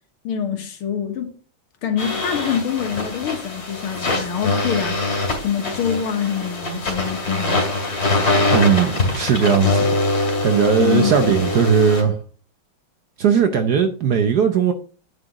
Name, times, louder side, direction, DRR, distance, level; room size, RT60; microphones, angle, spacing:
voice 1, 0.2-1.3 1.8-5.2 5.4-7.6 10.8-11.2, left 8 dB, 80° left, 2.1 m, -25 dB
sound 1, 2.0-12.0, left 2 dB, 45° left, 3.0 m, -23 dB
voice 2, 8.5-10.0 10.4-12.2 13.2-14.7, right 7 dB, 65° right, 1.0 m, -18 dB
8.9 x 7.5 x 3.0 m
omnidirectional pair, 2.3 m